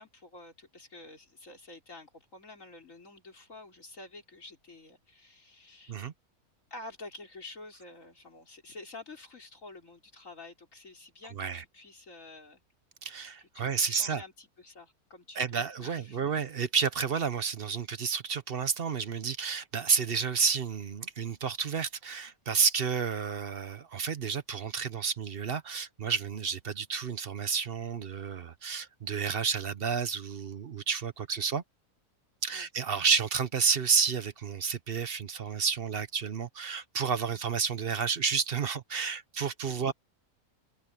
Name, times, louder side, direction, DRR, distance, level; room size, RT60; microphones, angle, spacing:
voice 1, 0.0-6.0 6.7-12.6 13.4-16.2 32.5-32.7 39.7-39.9, left 2 dB, 60° left, 4.8 m, -49 dB
voice 2, 11.3-11.6 13.0-14.2 15.4-31.6 32.4-39.9, right 6 dB, 45° right, 0.9 m, -30 dB
omnidirectional pair, 1.6 m